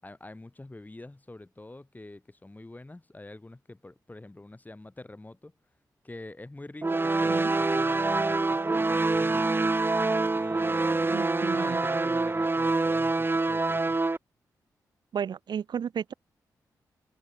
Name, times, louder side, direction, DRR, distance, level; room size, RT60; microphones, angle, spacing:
voice 1, 0.0-5.5 6.0-9.7 10.3-14.0, left 2 dB, 20° left, 6.9 m, -46 dB
sound 1, 6.8-14.2, right 3 dB, 30° right, 1.7 m, -26 dB
voice 2, 11.1-11.8 15.1-16.1, right 8 dB, 70° right, 1.2 m, -33 dB
supercardioid pair, 50°, 8 cm